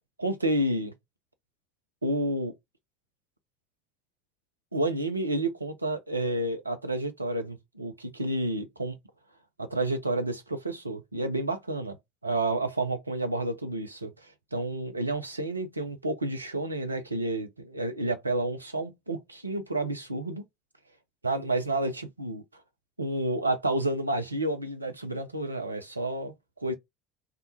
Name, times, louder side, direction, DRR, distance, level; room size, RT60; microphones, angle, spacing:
voice 1, 0.2-0.9 2.0-2.5 4.7-9.0 9.6-12.0 12.2-20.4 21.2-22.4 23.0-26.7, right 1 dB, 90° right, 0.4 m, -30 dB
2.2 x 2.1 x 2.8 m
figure-of-eight pair, 65°, 0 cm